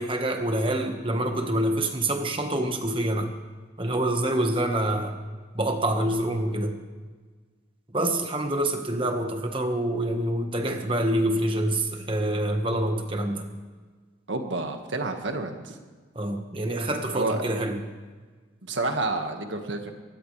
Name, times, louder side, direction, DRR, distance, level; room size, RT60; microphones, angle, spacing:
voice 1, 0.0-3.3 3.8-5.2 5.5-6.8 7.9-13.5 16.1-17.8, right 1 dB, 25° right, 4 dB, 1.5 m, -26 dB
voice 2, 14.3-15.8 17.1-17.4 18.6-19.9, right 2 dB, 80° right, 5 dB, 1.8 m, -29 dB
23.5 x 18.5 x 3.4 m, 1.4 s
head